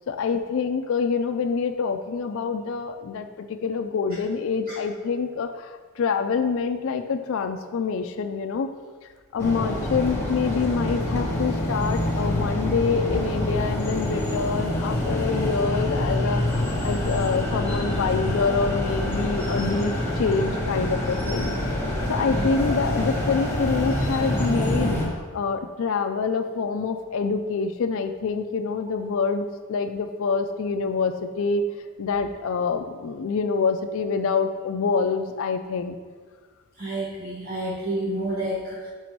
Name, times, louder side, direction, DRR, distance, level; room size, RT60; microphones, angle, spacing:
voice 1, 0.1-8.7 9.3-21.5 22.1-25.0 25.3-31.7 32.0-36.0, left 5 dB, 60° left, 6 dB, 0.4 m, -26 dB
sound 1, 9.4-25.1, left 1 dB, 10° left, 1.2 m, -26 dB
voice 2, 36.8-38.9, right 1 dB, 40° right, -6 dB, 1.0 m, -29 dB
5.5 x 5.1 x 4.5 m, 1.5 s
head